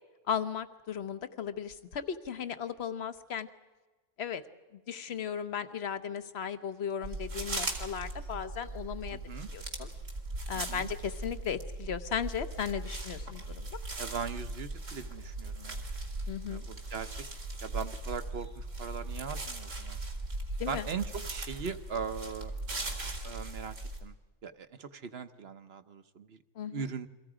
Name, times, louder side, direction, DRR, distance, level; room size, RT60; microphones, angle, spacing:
voice 1, 0.3-3.5 4.2-4.4 4.7-9.2 9.5-9.9 10.5-13.8 16.3-16.6 20.6-20.9 26.6-26.9, left 7 dB, 60° left, 12 dB, 1.2 m, -36 dB
sound 1, 7.0-24.0, right 2 dB, 90° right, 3.0 m, -39 dB
voice 2, 9.1-9.5 10.5-10.9 14.0-15.8 16.5-17.2 17.6-20.0 20.7-22.5 23.2-23.7 24.0-24.1 24.4-26.4 26.7-27.1, right 6 dB, 55° right, 10 dB, 1.2 m, -39 dB
29.5 x 23.5 x 5.0 m, 1.2 s
omnidirectional pair, 1.3 m